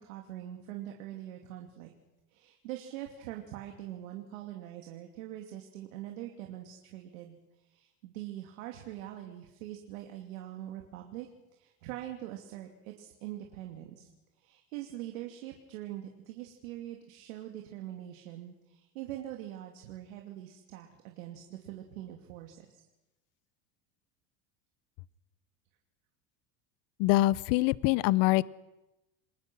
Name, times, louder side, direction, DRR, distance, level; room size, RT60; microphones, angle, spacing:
voice 1, 0.0-1.9 2.3-14.1 14.4-22.7, right 13 dB, 90° right, 2 dB, 2.8 m, -43 dB
voice 2, 27.0-28.4, left 18 dB, 55° left, 20 dB, 0.8 m, -24 dB
29.0 x 21.0 x 6.2 m, 0.96 s
cardioid pair, 145°, 39 cm